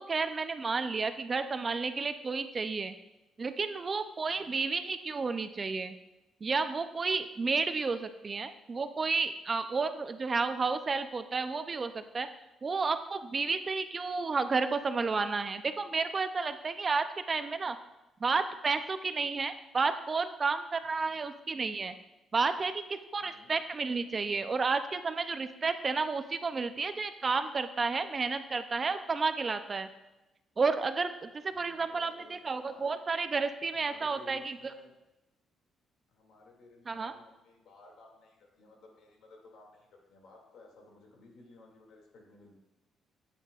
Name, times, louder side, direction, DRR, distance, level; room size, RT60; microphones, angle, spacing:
voice 1, 0.0-3.0 3.4-5.9 6.4-12.3 12.6-17.8 18.2-21.9 22.3-29.9 30.6-34.6 36.9-37.1, right 4 dB, 35° right, 10 dB, 0.5 m, -31 dB
voice 2, 4.2-4.6 20.9-21.2 23.2-23.6 31.5-33.0 33.7-34.9 36.1-42.6, left 2 dB, 75° left, 0 dB, 2.3 m, -57 dB
9.6 x 8.4 x 2.4 m, 1.0 s
cardioid pair, 90°, 0 cm